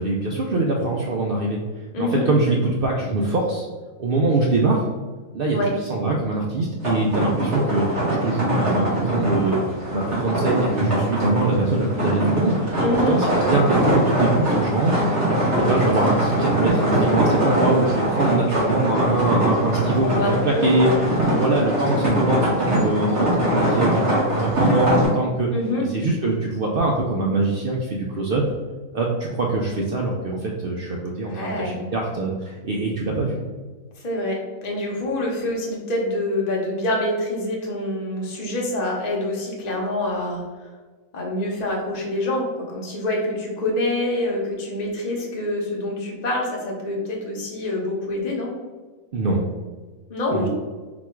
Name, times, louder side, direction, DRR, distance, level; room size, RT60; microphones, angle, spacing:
voice 1, 0.0-1.6 2.0-3.7 4.0-4.8 5.3-9.6 9.9-15.0 15.6-25.5 25.8-28.4 28.9-33.4 49.1-49.5 50.3-50.5, right 2 dB, 80° right, -2 dB, 0.5 m, -23 dB
voice 2, 1.9-2.3 5.5-5.7 12.8-13.2 18.1-18.5 20.0-21.6 25.5-25.8 31.3-31.8 34.0-40.7 41.1-48.5 50.1-50.5, left 1 dB, 35° left, -2 dB, 0.8 m, -26 dB
sound 1, 6.8-25.1, right 1 dB, 50° right, 1.7 m, -22 dB
4.1 x 2.4 x 4.3 m, 1.4 s
omnidirectional pair, 1.5 m